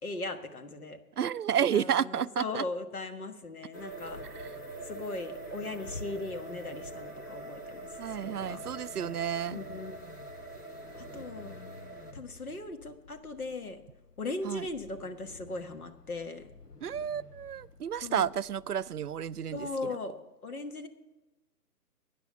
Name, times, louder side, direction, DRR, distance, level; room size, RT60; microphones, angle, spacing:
voice 1, 0.0-1.0 1.7-4.2 4.8-8.6 9.5-10.0 11.0-11.6 12.1-13.8 14.2-16.5 18.0-18.3 19.5-20.1 20.4-20.9, left 2 dB, 65° left, 1.5 m, -38 dB
voice 2, 1.2-2.6 4.3-4.5 8.0-9.6 14.4-14.7 16.8-20.0, right 9 dB, 75° right, 0.5 m, -31 dB
sound 1, 3.7-12.1, right 2 dB, 15° left, 0.5 m, -44 dB
sound 2, 3.9-19.9, left 3 dB, 85° left, 1.0 m, -53 dB
13.0 x 9.4 x 5.6 m
figure-of-eight pair, 135°, 46 cm